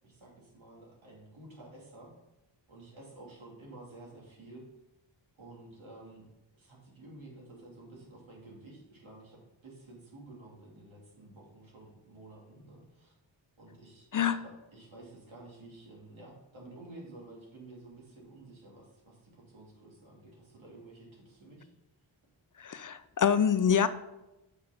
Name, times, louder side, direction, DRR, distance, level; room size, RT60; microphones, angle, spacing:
voice 1, 0.0-2.1 2.7-4.6 5.3-6.3 6.5-13.1 13.6-21.7, right 2 dB, 85° right, -3 dB, 2.9 m, -51 dB
voice 2, 22.6-23.9, left 7 dB, 45° left, 14 dB, 0.5 m, -26 dB
6.9 x 5.7 x 5.2 m, 0.97 s
wide cardioid pair, 80°, 46 cm